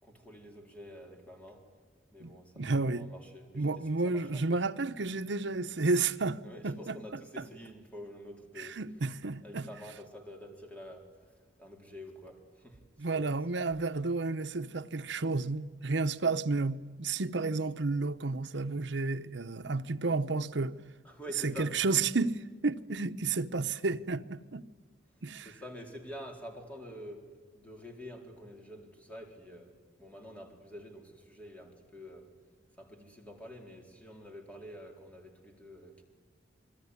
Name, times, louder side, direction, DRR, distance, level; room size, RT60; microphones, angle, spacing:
voice 1, 0.0-1.7 2.1-4.6 6.4-8.8 9.4-11.1 11.6-12.8 13.1-13.4 21.0-21.7 25.4-32.3 32.8-36.0, equal, 10° left, 4.0 m, -48 dB
voice 2, 2.2-3.1 3.5-6.4 6.6-7.0 7.4-7.5 8.6-9.7 13.0-20.8 21.4-24.7 25.2-25.5, right 3 dB, 70° right, 0.9 m, -31 dB
28.0 x 21.5 x 9.7 m
head